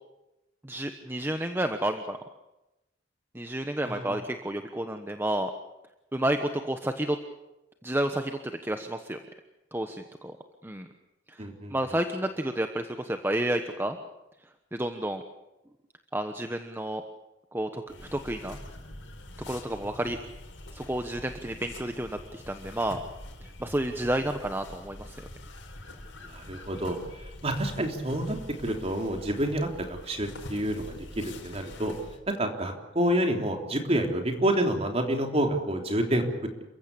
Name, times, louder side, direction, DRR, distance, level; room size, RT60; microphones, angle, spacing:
voice 1, 0.6-2.2 3.3-5.5 6.1-7.2 7.8-9.2 9.7-10.3 10.6-10.9 11.3-11.4 11.7-14.0 14.7-15.2 16.1-17.0 17.5-18.6 19.5-20.2 20.7-23.0 23.4-25.2, right 1 dB, 10° right, 7 dB, 1.1 m, -30 dB
voice 2, 3.8-4.2 11.4-11.8 26.2-27.0 27.4-32.0 32.3-36.6, right 1 dB, 35° right, 3 dB, 3.4 m, -28 dB
sound 1, 17.9-32.2, left 1 dB, 90° left, 5.0 m, -45 dB
29.0 x 15.5 x 8.6 m, 0.96 s
head